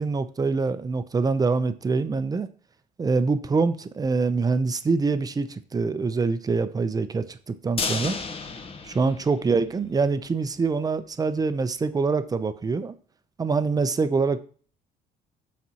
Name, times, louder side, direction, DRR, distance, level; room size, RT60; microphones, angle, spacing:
voice 1, 0.0-2.5 3.0-8.2 8.8-12.9 13.4-14.4, right 4 dB, 20° right, 0.6 m, -25 dB
sound 1, 7.8-9.9 10.2-10.3 10.7-10.8, left 4 dB, 35° left, 0.9 m, -32 dB
12.0 x 4.2 x 2.9 m
cardioid pair, 110°, 17 cm